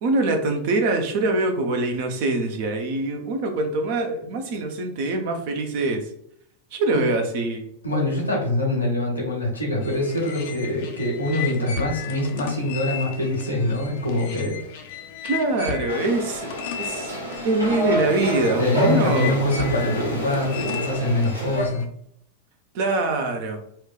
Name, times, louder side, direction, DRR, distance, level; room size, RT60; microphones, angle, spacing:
voice 1, 0.0-6.0 6.7-7.7 15.3-16.5 16.8-17.1 17.4-19.4 22.7-23.6, right 2 dB, 50° right, 5 dB, 0.6 m, -24 dB
voice 2, 7.8-14.6 18.6-21.9, left 1 dB, 80° left, -1 dB, 1.1 m, -24 dB
sound 1, 9.8-21.8, left 8 dB, 50° left, 0.5 m, -35 dB
sound 2, 15.9-21.7, equal, 80° right, 0.9 m, -28 dB
4.4 x 2.2 x 2.4 m, 0.69 s
figure-of-eight pair, 90°, 0 cm